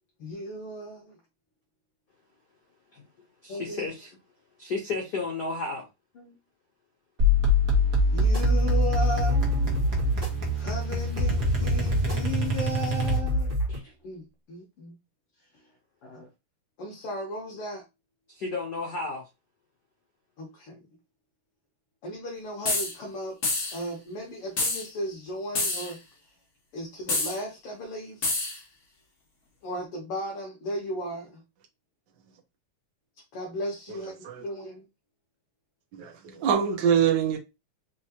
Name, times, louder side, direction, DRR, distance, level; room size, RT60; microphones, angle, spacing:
voice 1, 0.2-1.2 3.5-3.9 6.2-6.4 8.1-9.4 10.2-10.3 10.6-15.0 15.5-15.7 16.0-16.3 16.8-17.8 20.4-20.9 22.0-23.4 23.7-26.0 26.7-28.4 29.6-31.4 33.3-34.9, equal, 60° left, 1.7 m, -36 dB
voice 2, 3.4-4.1 4.6-5.9 18.3-19.2, left 3 dB, 90° left, 0.8 m, -32 dB
sound 1, 7.2-13.5, left 1 dB, 50° right, 1.0 m, -25 dB
sound 2, 8.2-13.8, equal, 25° right, 1.5 m, -30 dB
sound 3, 22.6-22.9 23.4-23.8 24.6-24.9 25.5-25.9 27.1-27.4 28.2-28.6, left 2 dB, 45° left, 1.4 m, -27 dB
voice 3, 35.9-37.4, right 8 dB, 75° right, 1.0 m, -24 dB
4.7 x 3.1 x 2.9 m
omnidirectional pair, 3.4 m